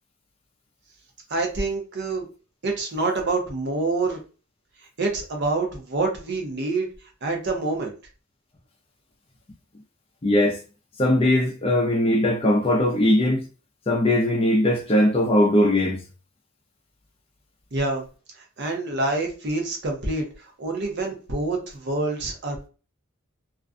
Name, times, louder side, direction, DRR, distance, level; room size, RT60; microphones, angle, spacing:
voice 1, 1.3-2.3 2.6-4.2 5.0-6.9 7.2-7.9 17.7-18.0 18.6-20.3 20.6-22.7, right 3 dB, 50° right, 0.7 m, -26 dB
voice 2, 10.2-10.6 11.0-13.4 13.9-16.0, left 1 dB, 25° left, 0.4 m, -20 dB
2.5 x 2.2 x 2.4 m
head